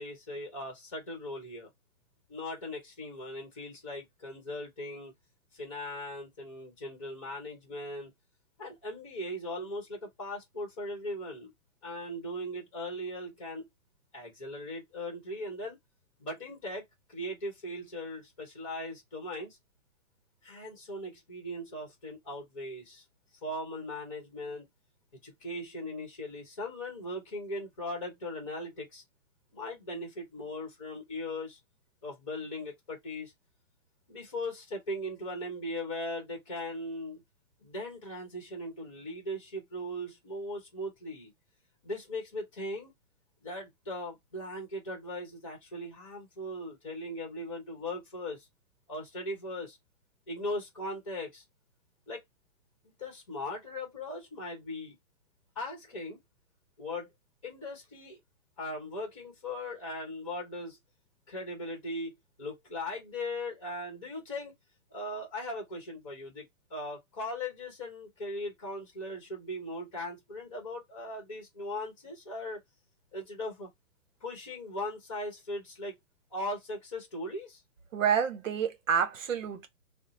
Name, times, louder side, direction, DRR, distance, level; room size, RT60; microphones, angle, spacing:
voice 1, 0.0-1.7 2.3-5.1 5.5-8.1 8.6-11.5 11.8-13.7 14.1-15.8 16.2-19.6 20.4-23.0 23.4-24.7 25.2-29.0 29.5-31.6 32.0-33.3 34.1-37.2 37.6-41.3 41.8-42.9 43.4-48.5 48.9-49.8 50.3-51.4 52.1-52.2 52.8-54.9 55.5-56.2 56.8-57.1 57.4-58.2 58.6-60.8 61.3-62.1 62.4-64.5 64.9-72.6 73.1-73.7 74.2-76.0 76.3-77.6, left 1 dB, 20° left, 1.0 m, -39 dB
voice 2, 77.9-79.7, right 7 dB, 60° right, 0.8 m, -28 dB
2.7 x 2.0 x 3.9 m
hypercardioid pair, 175°, 44 cm